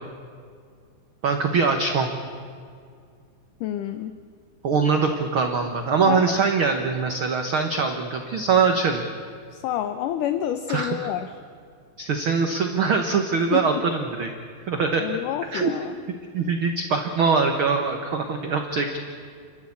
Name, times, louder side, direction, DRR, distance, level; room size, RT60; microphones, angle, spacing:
voice 1, 1.2-2.1 4.6-9.0 10.7-11.0 12.0-14.3 14.7-15.0 15.5-15.7 16.3-19.0, right 5 dB, 85° right, 4 dB, 1.1 m, -22 dB
voice 2, 3.6-4.1 6.0-6.2 9.5-11.3 13.5-13.8 15.0-15.9, left 11 dB, 75° left, 9 dB, 2.1 m, -28 dB
29.5 x 12.5 x 8.6 m, 2.2 s
omnidirectional pair, 4.3 m